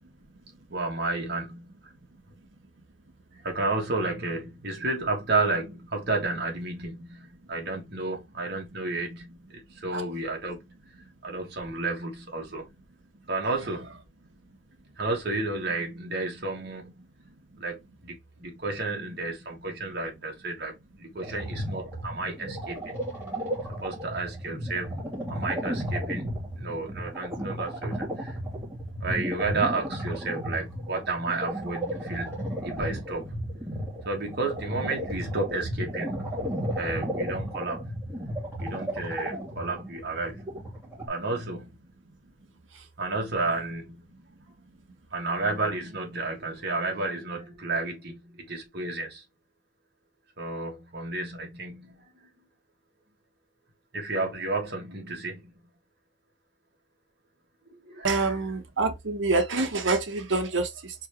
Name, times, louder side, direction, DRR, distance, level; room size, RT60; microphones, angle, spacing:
voice 1, 0.7-1.7 3.4-10.7 11.2-12.7 13.3-14.0 15.0-17.0 17.6-22.9 23.8-25.0 25.3-28.4 29.0-33.3 34.0-36.2 36.8-38.0 38.6-40.4 41.1-41.7 43.0-44.0 45.1-49.2 50.4-52.1 53.9-55.5 57.7-58.4, right 3 dB, 55° right, 1.8 m, -32 dB
sound 1, 21.2-41.1, equal, 10° right, 2.8 m, -34 dB
voice 2, 58.0-60.9, right 3 dB, 80° right, 1.1 m, -26 dB
4.5 x 3.4 x 3.0 m
head